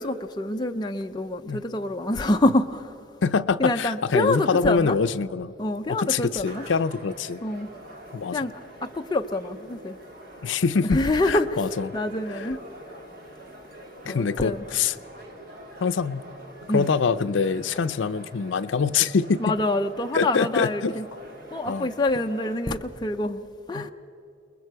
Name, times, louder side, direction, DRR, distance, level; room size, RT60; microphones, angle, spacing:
voice 1, 0.0-3.1 3.6-5.0 5.6-6.7 7.4-7.7 8.3-10.0 10.8-12.6 14.1-14.6 16.7-16.9 19.4-21.1 21.5-23.9, left 2 dB, 20° left, 0.5 m, -26 dB
voice 2, 3.2-5.5 5.9-7.4 8.1-8.4 10.4-11.9 14.1-14.9 15.8-16.2 16.7-19.4 20.1-20.9 21.7-21.9 23.8-23.9, left 5 dB, 70° left, 0.5 m, -24 dB
sound 1, 6.4-22.6, right 1 dB, 50° right, 2.0 m, -45 dB
28.5 x 21.0 x 4.6 m
head